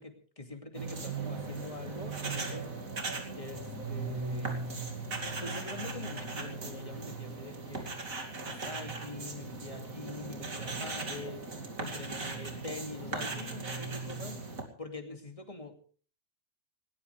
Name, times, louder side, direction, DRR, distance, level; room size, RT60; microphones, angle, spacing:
voice 1, 0.0-2.7 3.4-4.7 5.4-8.0 8.4-11.5 11.8-15.7, left 3 dB, 25° left, 4 dB, 2.6 m, -44 dB
sound 1, 0.7-14.6, right 3 dB, 75° right, 3.1 m, -38 dB
19.5 x 19.0 x 3.4 m, 0.42 s
omnidirectional pair, 1.5 m